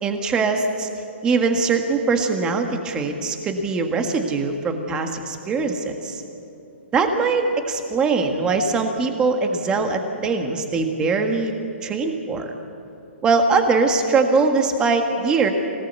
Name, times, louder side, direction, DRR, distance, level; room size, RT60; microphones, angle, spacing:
voice 1, 0.0-0.9 1.2-6.2 6.9-11.5 11.8-12.5 13.2-15.5, right 4 dB, 10° right, 5 dB, 1.7 m, -21 dB
24.0 x 18.0 x 8.2 m, 2.9 s
hypercardioid pair, 165°, 7 cm